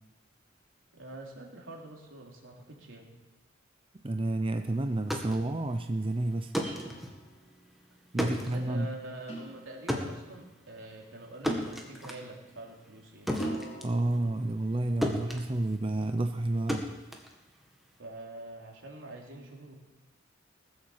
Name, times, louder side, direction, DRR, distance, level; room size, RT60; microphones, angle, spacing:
voice 1, 0.9-3.1 8.2-13.3 18.0-19.8, right 1 dB, 80° right, -1 dB, 3.5 m, -45 dB
voice 2, 4.0-6.5 8.1-8.9 13.8-16.8, right 2 dB, 25° right, 7 dB, 0.6 m, -30 dB
sound 1, 4.9-14.8 15.0-18.0, equal, ahead, 1.8 m, -36 dB
sound 2, 6.7-7.5 9.3-10.1 11.4-12.5 13.4-14.4, right 1 dB, 35° left, 3.7 m, -41 dB
20.0 x 7.9 x 7.3 m, 1.0 s
head